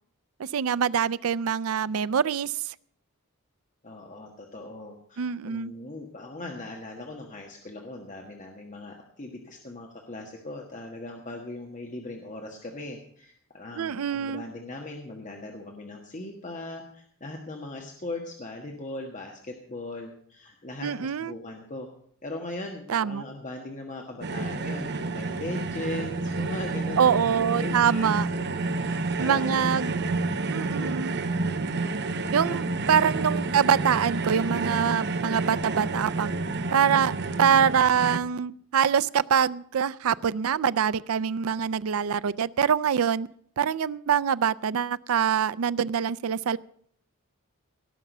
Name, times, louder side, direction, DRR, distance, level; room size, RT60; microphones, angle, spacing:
voice 1, 0.4-2.7 5.2-5.7 13.8-14.4 20.8-21.3 22.9-23.2 27.0-28.3 29.2-30.0 30.5-31.1 32.3-36.3 36.7-37.1 37.4-43.3 43.6-46.6, right 7 dB, 75° right, 17 dB, 0.4 m, -24 dB
voice 2, 3.8-21.9 22.2-29.7 30.5-31.1 32.5-32.7, left 2 dB, 35° left, 2 dB, 1.5 m, -39 dB
sound 1, 24.2-38.2, right 3 dB, 50° right, 0.8 m, -29 dB
17.5 x 6.0 x 8.1 m, 0.62 s
head